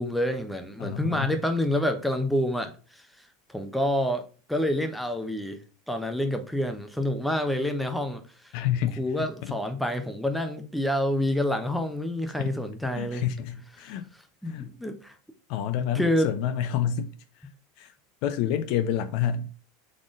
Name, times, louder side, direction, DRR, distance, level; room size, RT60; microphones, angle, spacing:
voice 1, 0.0-3.0 3.5-4.2 4.5-5.6 5.9-8.5 9.0-13.3 13.8-13.9 14.4-15.1 15.9-16.3, left 1 dB, ahead, 0.8 m, -28 dB
voice 2, 0.8-1.3 8.5-9.6 12.4-12.5 13.0-14.1 14.4-14.7 15.5-17.1 17.8-17.9 18.2-19.5, left 9 dB, 55° left, 0.5 m, -29 dB
4.0 x 3.6 x 3.6 m
hypercardioid pair, 85°, 0 cm